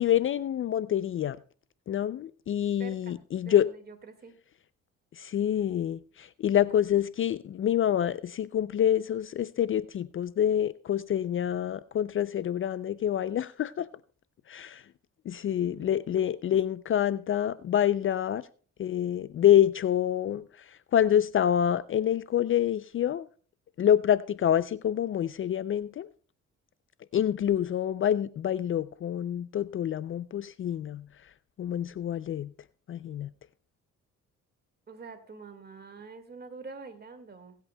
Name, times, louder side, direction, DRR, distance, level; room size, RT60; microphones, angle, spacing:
voice 1, 0.0-1.4 1.9-3.7 5.1-13.9 14.5-14.9 15.3-18.5 18.8-23.3 23.8-26.1 27.1-31.3 31.6-32.5 32.9-33.3, left 10 dB, 45° left, 0.4 m, -27 dB
voice 2, 2.8-4.4 15.5-16.0 16.5-16.6 34.9-37.6, right 4 dB, 35° right, 1.9 m, -46 dB
24.5 x 8.2 x 2.2 m
cardioid pair, 90°, 30 cm